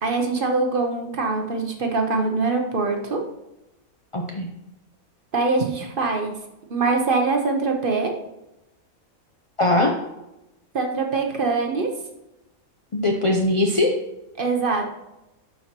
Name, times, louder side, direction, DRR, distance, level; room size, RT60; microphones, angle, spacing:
voice 1, 0.0-3.2 5.3-6.3 6.7-8.1 10.7-11.9 14.4-14.8, right 3 dB, 45° right, 3 dB, 0.9 m, -23 dB
voice 2, 4.1-4.5 9.6-9.9 12.9-13.9, left 2 dB, 50° left, 1 dB, 0.3 m, -20 dB
11.5 x 4.5 x 2.9 m, 0.94 s
omnidirectional pair, 1.5 m